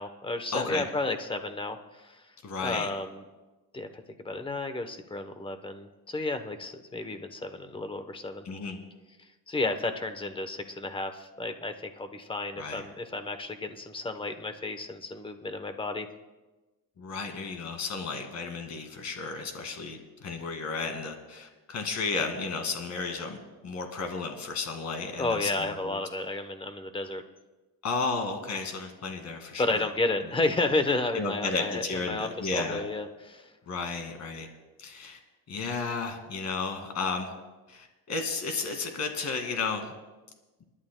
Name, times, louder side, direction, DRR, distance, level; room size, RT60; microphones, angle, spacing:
voice 1, 0.0-2.2 2.6-3.2 3.7-8.4 9.5-16.1 25.2-27.2 29.6-33.5, left 2 dB, 15° left, 8 dB, 0.9 m, -32 dB
voice 2, 0.5-0.8 2.4-2.9 8.4-8.8 12.6-12.8 17.0-26.0 27.8-29.9 31.1-32.8 33.7-34.5 34.8-35.2 35.5-37.3 37.7-39.9, left 4 dB, 50° left, 5 dB, 2.0 m, -33 dB
29.5 x 11.5 x 2.2 m, 1.2 s
cardioid pair, 130°, 36 cm